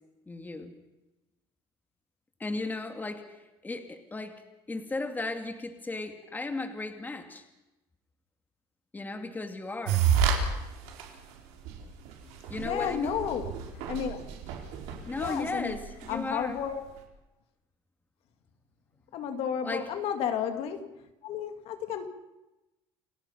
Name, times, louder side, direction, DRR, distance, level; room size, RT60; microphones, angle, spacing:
voice 1, 0.3-0.7 2.4-4.4 4.7-7.5 8.9-10.1 12.5-13.2 15.0-16.6 19.6-19.9, left 2 dB, 15° left, 6 dB, 2.6 m, -36 dB
sound 1, 9.9-10.4 10.9-11.0 11.7-11.8 12.1-12.2 12.4-16.1, right 8 dB, 85° right, 4.4 m, -29 dB
voice 2, 12.6-13.5 13.9-14.2 15.2-15.8 16.1-16.8 19.1-21.0 21.2-22.1, left 8 dB, 65° left, 7 dB, 2.1 m, -32 dB
29.0 x 18.0 x 5.8 m, 1.0 s
cardioid pair, 110°, 11 cm